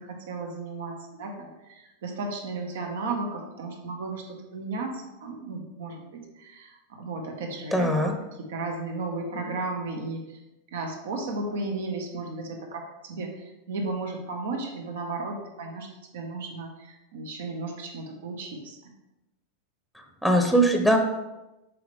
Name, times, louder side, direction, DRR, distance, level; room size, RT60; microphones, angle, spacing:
voice 1, 0.0-7.9 8.4-10.4 10.7-15.9 16.1-18.8, right 3 dB, 80° right, 2 dB, 1.6 m, -34 dB
voice 2, 7.7-8.1 20.2-21.0, right 1 dB, ahead, 3 dB, 0.8 m, -20 dB
7.7 x 5.7 x 3.6 m, 0.98 s
supercardioid pair, 140°, 0 cm